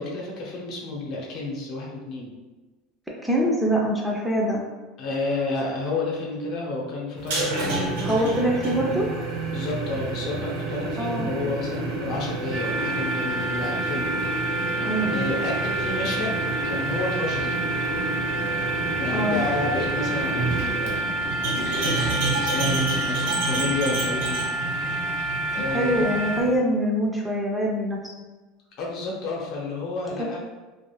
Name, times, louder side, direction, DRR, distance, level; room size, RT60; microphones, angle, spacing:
voice 1, 0.0-2.3 5.0-8.0 8.6-8.8 9.5-14.1 15.0-17.6 19.0-21.2 21.5-24.5 25.2-26.1 28.8-30.4, left 3 dB, 55° left, -3 dB, 0.8 m, -31 dB
voice 2, 3.2-4.6 8.0-9.1 11.0-11.3 14.8-15.3 19.1-19.5 25.5-28.0, equal, 5° right, -3 dB, 0.4 m, -24 dB
sound 1, 7.2-26.6, right 2 dB, 90° right, 0.8 m, -29 dB
sound 2, 12.5-26.4, right 2 dB, 50° right, 0.6 m, -29 dB
2.4 x 2.4 x 3.0 m, 1.2 s
supercardioid pair, 135°, 0 cm